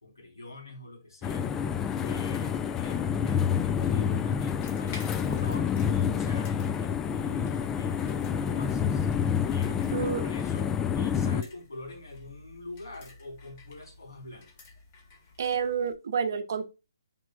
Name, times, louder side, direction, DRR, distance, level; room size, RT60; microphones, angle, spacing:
voice 1, 0.0-1.5 2.0-6.5 6.8-9.1 9.5-14.7, left 2 dB, 75° left, 3.8 m, -44 dB
sound 1, 1.2-11.4, left 7 dB, 15° left, 0.4 m, -28 dB
sound 2, 4.6-15.9, left 3 dB, 35° left, 2.0 m, -51 dB
voice 2, 15.4-16.7, right 6 dB, 50° right, 0.8 m, -29 dB
9.1 x 5.3 x 2.4 m
figure-of-eight pair, 135°, 2 cm